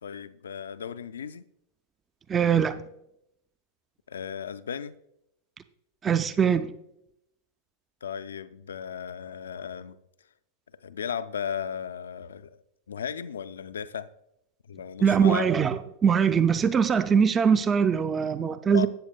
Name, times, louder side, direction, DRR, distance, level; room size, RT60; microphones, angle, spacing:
voice 1, 0.0-1.4 4.1-5.0 8.0-10.0 10.8-12.6 12.9-14.1 14.7-15.5 18.7-18.9, left 8 dB, 65° left, 0.4 m, -35 dB
voice 2, 2.3-2.8 6.0-6.7 15.0-18.9, right 7 dB, 20° right, 0.4 m, -22 dB
13.0 x 8.5 x 2.2 m
figure-of-eight pair, 90°, 0 cm